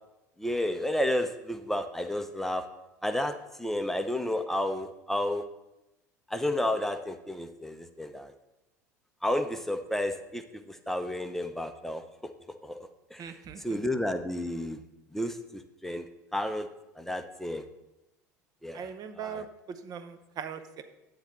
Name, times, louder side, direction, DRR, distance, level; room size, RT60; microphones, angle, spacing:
voice 1, 0.4-2.6 3.0-5.4 6.3-8.3 9.2-12.0 12.6-12.8 13.1-14.8 15.1-16.1 16.3-16.7 17.0-17.6 18.6-18.9 19.2-19.4, left 1 dB, 5° left, 7 dB, 0.7 m, -31 dB
voice 2, 13.2-13.8 18.7-20.8, right 7 dB, 45° right, 9 dB, 0.8 m, -40 dB
9.2 x 3.9 x 6.8 m, 0.96 s
hypercardioid pair, 75°, 9 cm